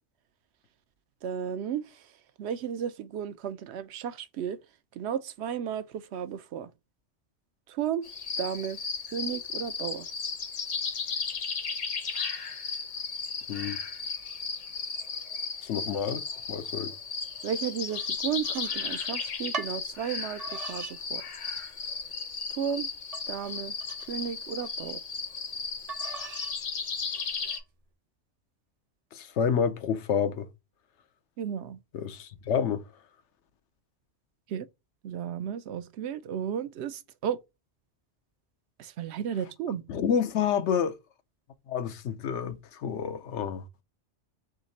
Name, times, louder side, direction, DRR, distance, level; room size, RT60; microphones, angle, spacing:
voice 1, 1.2-1.9 2.4-4.6 5.0-6.7 7.7-8.1 8.4-8.8 9.1-10.1 17.4-21.2 22.6-22.9 23.3-23.8 24.1-25.0 31.4-31.8 34.5-34.7 35.0-37.4 38.8-39.8, right 8 dB, 70° right, 0.8 m, -33 dB
sound 1, 8.0-27.6, left 5 dB, 45° left, 0.7 m, -35 dB
voice 2, 15.6-16.2 16.5-16.9 29.1-30.5 31.9-32.8 39.9-41.0 41.7-43.6, left 7 dB, 85° left, 1.0 m, -29 dB
sound 2, 17.9-19.1 19.5-19.8 20.4-21.0 21.4-21.9 22.4-22.5 23.1-24.7 25.9-26.6 27.1-27.6, right 4 dB, 45° right, 0.5 m, -41 dB
3.6 x 3.2 x 4.0 m
omnidirectional pair, 1.2 m